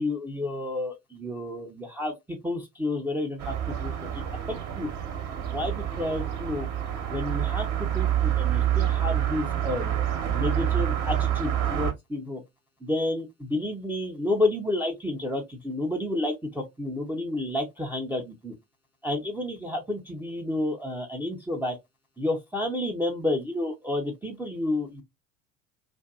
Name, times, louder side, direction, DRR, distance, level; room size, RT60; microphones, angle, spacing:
voice 1, 0.0-4.9 5.5-6.7 7.1-9.9 10.3-12.4 12.8-18.5 19.0-21.8 22.2-25.0, left 2 dB, 5° right, 0.6 m, -30 dB
sound 1, 3.4-11.9, right 11 dB, 45° right, 1.0 m, -27 dB
2.6 x 2.5 x 2.3 m
hypercardioid pair, 75°, 40 cm